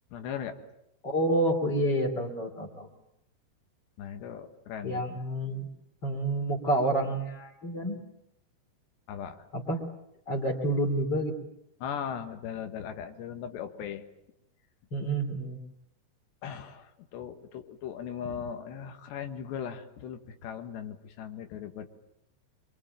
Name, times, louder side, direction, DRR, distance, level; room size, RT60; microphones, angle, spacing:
voice 1, 0.1-0.6 4.0-5.2 9.1-9.4 11.8-14.0 16.4-21.9, left 8 dB, 85° left, 7 dB, 3.8 m, -38 dB
voice 2, 1.0-2.9 4.8-5.7 6.0-8.0 9.5-9.8 10.3-11.3 14.9-15.6, right 1 dB, 30° left, 4 dB, 2.9 m, -29 dB
25.5 x 23.5 x 9.1 m, 0.82 s
omnidirectional pair, 4.9 m